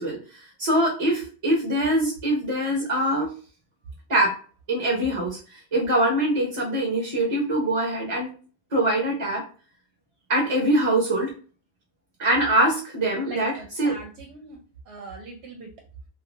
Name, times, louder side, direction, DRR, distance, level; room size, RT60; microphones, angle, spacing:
voice 1, 0.0-3.3 4.1-4.4 4.7-8.3 8.7-9.4 10.3-11.3 12.2-14.0, right 1 dB, 30° right, -2 dB, 0.9 m, -23 dB
voice 2, 13.2-14.6 14.9-15.7, right 3 dB, 75° right, 1 dB, 0.9 m, -41 dB
2.6 x 2.4 x 2.5 m, 0.38 s
omnidirectional pair, 1.1 m